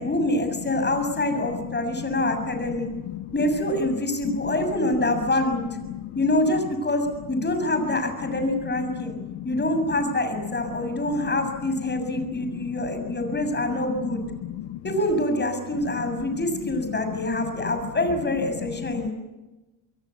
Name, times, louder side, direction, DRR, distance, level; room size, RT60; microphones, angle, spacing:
voice 1, 0.0-2.9 3.3-5.7 6.2-9.1 9.4-14.2 14.8-19.1, left 1 dB, 20° left, 7 dB, 7.0 m, -25 dB
voice 2, 9.0-9.4 12.5-12.6 14.4-14.8 18.9-19.1, left 14 dB, 70° left, 11 dB, 1.0 m, -36 dB
26.5 x 22.5 x 8.5 m, 1.1 s
cardioid pair, 115°, 47 cm